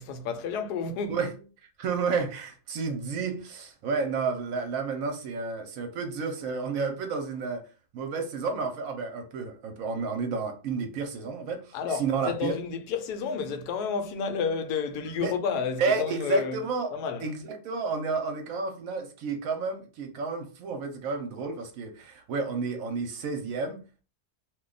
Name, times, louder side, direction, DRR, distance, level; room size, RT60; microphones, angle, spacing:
voice 1, 0.0-1.2 11.7-16.6 16.9-17.3, left 6 dB, 80° left, 1.1 m, -31 dB
voice 2, 1.8-7.6 7.9-12.6 15.0-15.3 15.8-16.9 17.2-23.8, right 4 dB, 65° right, 1.0 m, -31 dB
2.6 x 2.2 x 3.8 m
omnidirectional pair, 1.7 m